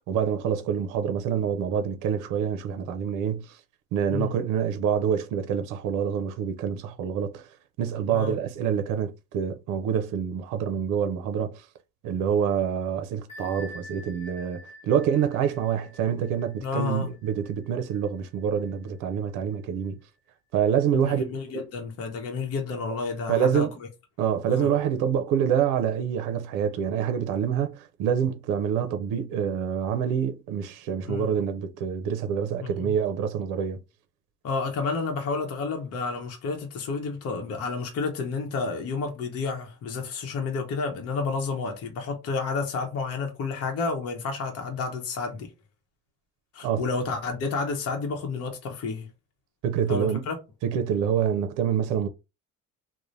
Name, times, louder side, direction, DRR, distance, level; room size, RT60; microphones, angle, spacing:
voice 1, 0.0-3.6 3.9-7.5 7.8-11.6 12.0-20.0 20.5-21.3 21.5-21.6 23.3-23.7 24.2-33.8 46.6-46.9 49.6-50.2 50.6-52.1, right 8 dB, 80° right, 0.5 m, -26 dB
Bell, 13.3-18.7, left 1 dB, 20° left, 1.3 m, -48 dB
voice 2, 16.6-17.1 20.9-23.9 24.5-24.7 31.1-31.3 32.6-32.9 34.4-45.5 46.5-49.1 49.9-50.4, left 4 dB, 50° left, 0.8 m, -30 dB
3.1 x 2.1 x 2.6 m
cardioid pair, 140°, 31 cm